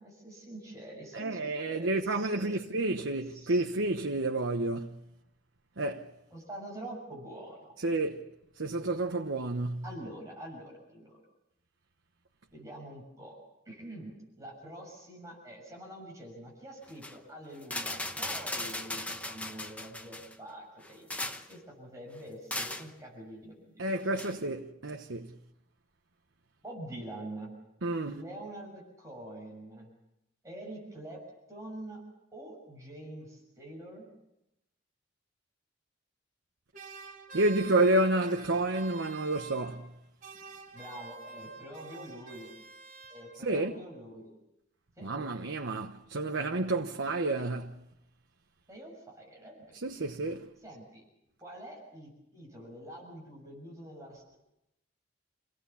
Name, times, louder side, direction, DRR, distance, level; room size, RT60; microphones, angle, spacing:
voice 1, 0.0-3.6 6.3-7.7 9.8-11.2 12.5-13.4 13.7-24.2 26.6-27.5 28.0-29.9 30.4-31.2 31.5-32.0 32.3-34.1 40.7-42.5 43.1-44.3 45.0-45.1 48.7-50.1 50.6-51.0 51.4-54.4, right 1 dB, 15° right, 6.4 m, -46 dB
voice 2, 1.1-5.0 5.8-6.1 7.8-8.3 8.6-9.8 23.8-25.3 27.8-28.2 37.3-39.9 43.4-43.7 45.0-47.8 49.7-50.5, right 2 dB, 80° right, 1.1 m, -30 dB
sound 1, 16.9-17.2 17.6-20.3 20.8-21.6 22.5-22.9 24.1-24.3, left 1 dB, 5° left, 1.0 m, -37 dB
sound 2, 36.7-40.0 40.2-43.6, right 3 dB, 45° right, 4.6 m, -47 dB
28.5 x 18.0 x 7.1 m
head